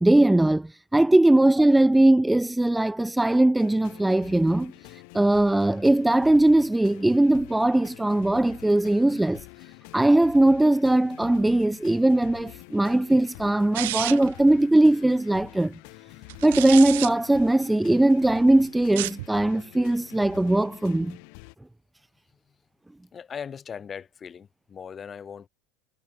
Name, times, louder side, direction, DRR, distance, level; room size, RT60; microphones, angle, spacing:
voice 1, 0.0-4.7 5.1-9.5 9.9-15.7 16.4-21.2, right 1 dB, 5° right, 0.5 m, -20 dB
sound 1, 3.6-21.6, left 40 dB or more, 65° left, 5.7 m, -47 dB
sound 2, 13.8-14.4 16.3-17.1 18.8-19.3, right 20 dB, 70° right, 0.9 m, -30 dB
voice 2, 16.1-16.5 23.1-25.5, left 7 dB, 30° left, 4.5 m, -39 dB
hypercardioid pair, 80°, 0 cm